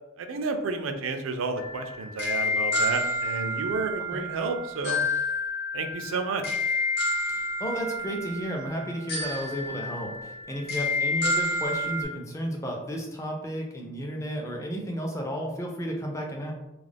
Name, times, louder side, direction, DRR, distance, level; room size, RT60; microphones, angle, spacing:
voice 1, 0.2-5.0 5.7-6.6, right 3 dB, 80° right, 6 dB, 0.4 m, -31 dB
sound 1, 1.6-12.0, left 2 dB, 55° left, 0.7 m, -29 dB
voice 2, 7.3-16.5, equal, 15° left, 0 dB, 0.4 m, -33 dB
2.4 x 2.0 x 3.3 m, 0.95 s
head